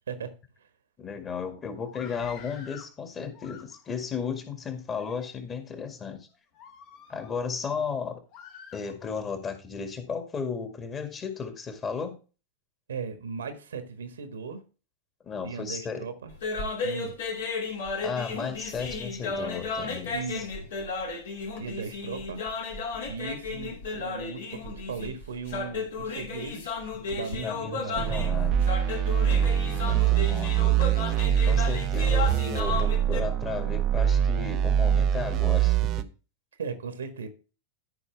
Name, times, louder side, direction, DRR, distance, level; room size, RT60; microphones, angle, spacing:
voice 1, 1.0-6.3 7.1-8.2 8.7-12.2 15.2-16.0 18.0-20.5 27.4-28.6 29.3-30.7 31.5-36.1, left 5 dB, 25° left, 1.9 m, -34 dB
Screaming, 1.8-2.9 3.3-4.1 4.8-5.3 5.8-6.0 6.5-7.5 8.3-9.3, left 8 dB, 45° left, 1.6 m, -49 dB
voice 2, 12.9-14.6 15.4-16.3 16.8-17.1 20.1-20.7 21.5-22.4 23.1-26.7 27.1-28.1 29.2-29.5 36.6-37.3, right 5 dB, 70° right, 1.5 m, -37 dB
sound 1, 16.3-33.2, left 4 dB, 60° left, 2.6 m, -34 dB
sound 2, 28.0-36.0, right 10 dB, 35° right, 0.6 m, -24 dB
13.5 x 5.4 x 3.4 m
figure-of-eight pair, 90°, 0 cm